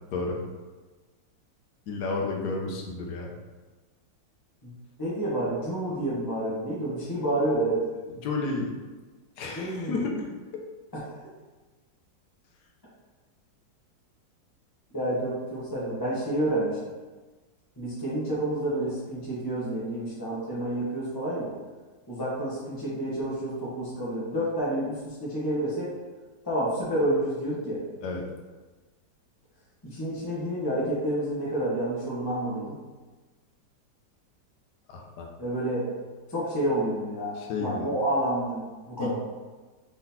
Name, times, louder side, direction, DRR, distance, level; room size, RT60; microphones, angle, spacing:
voice 1, 1.9-3.3 8.1-8.7 9.4-10.3 28.0-28.3 34.9-35.3 37.4-37.9 39.0-39.1, left 3 dB, 70° left, 0 dB, 1.2 m, -31 dB
voice 2, 5.0-7.8 9.5-10.0 10.9-11.0 14.9-16.8 17.8-21.5 22.1-25.9 26.4-27.8 29.8-32.7 35.4-35.9 36.3-39.1, right 1 dB, 15° left, -8 dB, 0.8 m, -29 dB
4.8 x 3.8 x 2.8 m, 1.3 s
omnidirectional pair, 2.0 m